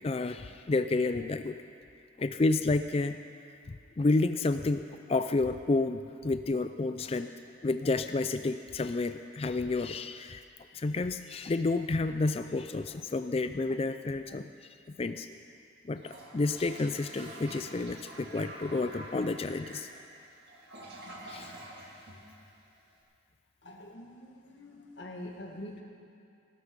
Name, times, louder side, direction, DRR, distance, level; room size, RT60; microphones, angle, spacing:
voice 1, 0.0-1.6 2.2-3.2 3.7-7.3 7.6-10.4 10.7-14.5 14.9-15.3 15.9-19.9 21.3-21.5, left 3 dB, 30° left, 9 dB, 0.4 m, -30 dB
Toilet flush, 16.0-22.9, right 1 dB, 55° right, 2.3 m, -47 dB
voice 2, 23.6-25.8, left 1 dB, 60° left, 0 dB, 1.9 m, -45 dB
16.5 x 13.0 x 5.3 m, 2.5 s
head